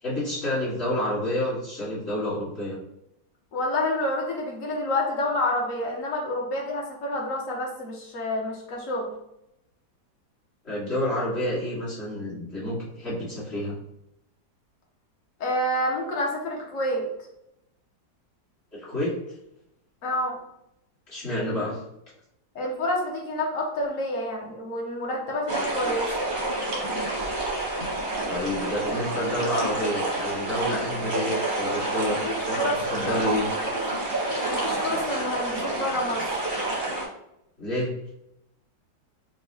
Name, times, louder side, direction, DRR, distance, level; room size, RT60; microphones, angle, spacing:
voice 1, 0.0-2.8 10.6-13.7 18.7-19.1 21.1-21.8 28.3-32.2 32.5-33.5 37.6-37.9, left 1 dB, 35° left, -9 dB, 1.7 m, -29 dB
voice 2, 3.5-9.1 15.4-17.1 20.0-20.4 22.5-26.1 32.1-33.3 34.5-36.4, left 1 dB, 55° left, -1 dB, 1.0 m, -28 dB
sound 1, 25.5-37.0, right 2 dB, 40° right, 0.7 m, -28 dB
4.8 x 2.2 x 2.7 m, 0.82 s
omnidirectional pair, 2.0 m